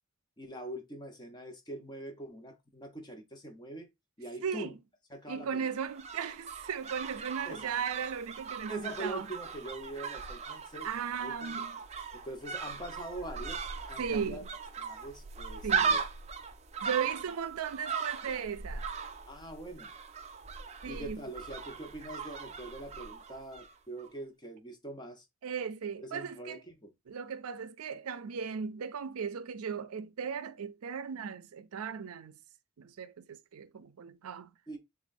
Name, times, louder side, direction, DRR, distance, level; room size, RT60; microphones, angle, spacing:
voice 1, 0.4-3.9 4.2-4.7 5.1-5.7 7.4-7.7 8.7-10.9 11.2-11.6 12.1-14.4 14.8-16.0 19.3-19.9 20.9-25.3 26.0-26.9 34.7-34.8, right 1 dB, 20° left, 0.9 m, -43 dB
voice 2, 5.3-9.3 10.8-11.8 14.0-14.5 15.6-16.0 16.8-18.9 20.8-21.2 25.4-26.6 27.1-32.3 32.8-34.5, right 7 dB, 85° right, 0.4 m, -37 dB
sound 1, 5.6-23.7 24.0-24.1, right 5 dB, 30° right, 0.4 m, -38 dB
7.0 x 2.4 x 2.6 m
head